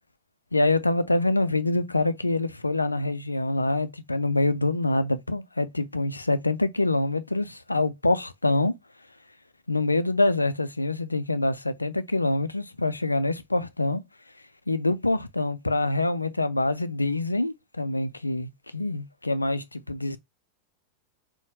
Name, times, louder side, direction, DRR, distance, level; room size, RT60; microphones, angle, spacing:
voice 1, 0.5-8.7 9.7-14.0 14.7-20.2, left 2 dB, 85° left, 0.3 m, -25 dB
4.0 x 2.1 x 2.7 m
figure-of-eight pair, 90°, 0 cm